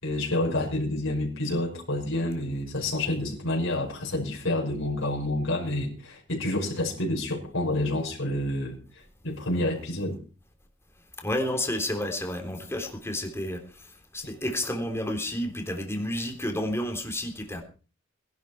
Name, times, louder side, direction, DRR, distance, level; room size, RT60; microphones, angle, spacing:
voice 1, 0.0-10.2, left 1 dB, 70° left, 5.6 m, -29 dB
voice 2, 11.2-17.6, left 1 dB, 15° left, 3.6 m, -31 dB
21.0 x 12.0 x 4.5 m
head